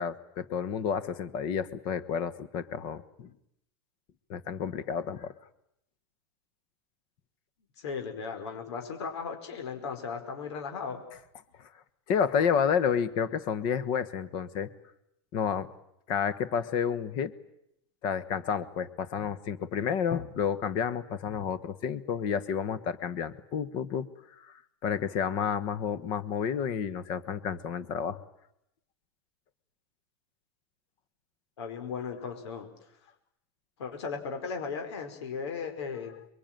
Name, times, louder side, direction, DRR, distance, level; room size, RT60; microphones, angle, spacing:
voice 1, 0.0-3.3 4.3-5.3 11.6-11.7 12.1-14.7 15.3-15.7 16.1-17.3 18.0-24.1 24.4-24.5 24.8-28.2, left 7 dB, 30° left, 14 dB, 1.2 m, -30 dB
voice 2, 7.8-11.0 31.6-32.7 33.8-36.1, left 5 dB, 80° left, 4 dB, 5.0 m, -36 dB
28.0 x 22.5 x 9.1 m, 0.77 s
supercardioid pair, 175°, 14 cm